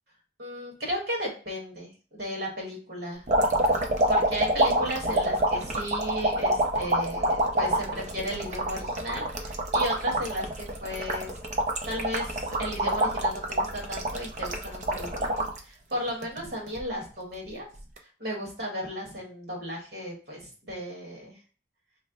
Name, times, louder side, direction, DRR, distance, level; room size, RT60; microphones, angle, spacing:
voice 1, 0.4-3.2 4.1-11.4 11.8-15.3 15.6-17.7 18.2-21.3, equal, 55° right, -2 dB, 1.4 m, -35 dB
sound 1, 3.3-15.6 16.1-16.8 17.8-18.0, right 1 dB, 40° right, 0.5 m, -26 dB
3.1 x 2.1 x 3.7 m, 0.39 s
head